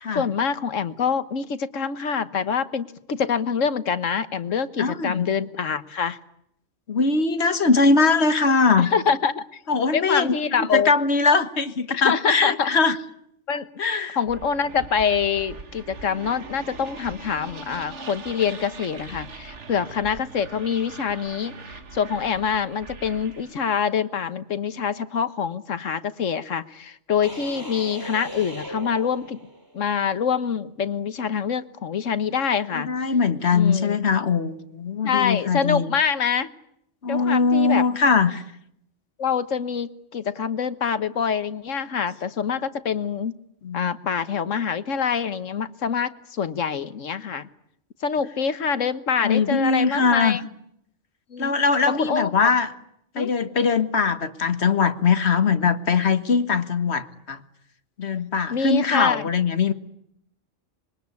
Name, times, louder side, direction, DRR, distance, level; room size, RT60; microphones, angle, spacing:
voice 1, 0.1-6.2 8.8-9.6 9.9-10.9 11.9-12.7 13.5-13.7 14.1-29.4 29.7-32.9 33.5-34.0 35.0-36.5 37.1-37.8 39.2-43.4 43.7-47.5 48.0-50.4 51.3-51.5 51.9-52.5 53.1-53.3 58.5-59.3, left 7 dB, 85° left, 13 dB, 1.6 m, -25 dB
voice 2, 4.8-5.2 6.9-8.9 9.7-13.0 13.8-14.2 32.7-35.9 37.0-38.4 43.6-43.9 49.2-50.4 51.4-52.7 53.2-57.4 58.0-59.7, left 4 dB, 60° left, 10 dB, 1.8 m, -21 dB
sound 1, 14.3-23.7, right 4 dB, 70° right, 2.0 m, -41 dB
sound 2, 27.2-29.9, equal, 15° right, 2.8 m, -37 dB
25.5 x 22.5 x 9.6 m, 0.76 s
omnidirectional pair, 1.3 m